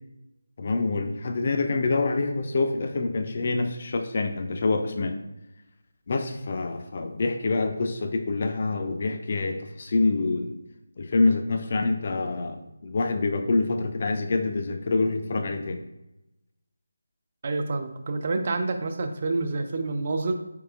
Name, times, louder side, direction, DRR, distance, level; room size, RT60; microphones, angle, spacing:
voice 1, 0.6-5.1 6.1-10.6 11.0-15.8, left 3 dB, 40° left, 6 dB, 0.4 m, -26 dB
voice 2, 17.4-20.3, right 3 dB, 40° right, 7 dB, 0.5 m, -28 dB
4.7 x 4.6 x 2.4 m, 0.94 s
figure-of-eight pair, 155°, 0 cm